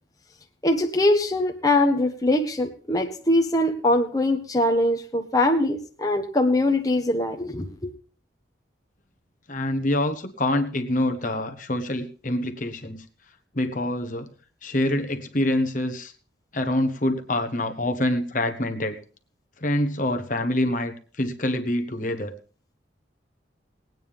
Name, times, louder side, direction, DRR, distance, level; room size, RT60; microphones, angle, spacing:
voice 1, 0.6-7.9, left 1 dB, 20° left, 3 dB, 1.2 m, -22 dB
voice 2, 9.5-13.0 13.5-14.3 14.6-16.1 16.5-19.0 19.6-22.3, left 1 dB, 45° left, 6 dB, 1.2 m, -26 dB
20.0 x 9.3 x 3.5 m, 0.40 s
head